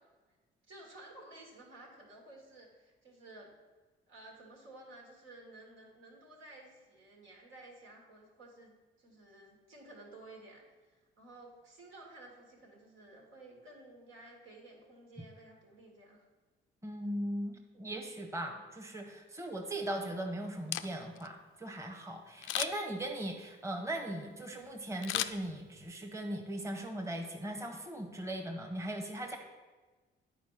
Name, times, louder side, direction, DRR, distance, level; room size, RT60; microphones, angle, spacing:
voice 1, 0.6-3.5 4.1-8.7 9.0-16.3, right 2 dB, 80° right, 0 dB, 2.3 m, -54 dB
voice 2, 16.8-29.4, right 1 dB, 15° right, 3 dB, 1.1 m, -39 dB
Camera, 20.5-21.3 22.4-23.0 25.0-26.0 26.4-26.5, left 13 dB, 80° left, 0.4 m, -36 dB
9.4 x 4.5 x 5.8 m, 1.3 s
cardioid pair, 90°, 20 cm